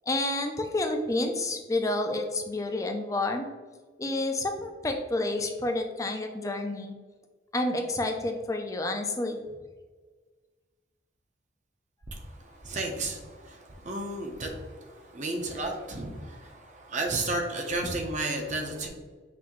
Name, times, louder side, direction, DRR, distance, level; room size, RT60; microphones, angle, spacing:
voice 1, 0.1-3.5 4.0-6.9 7.5-9.4, left 2 dB, 15° left, 4 dB, 0.4 m, -29 dB
voice 2, 12.6-18.9, right 2 dB, 40° right, 2 dB, 0.7 m, -33 dB
5.9 x 2.6 x 3.0 m, 1.4 s
head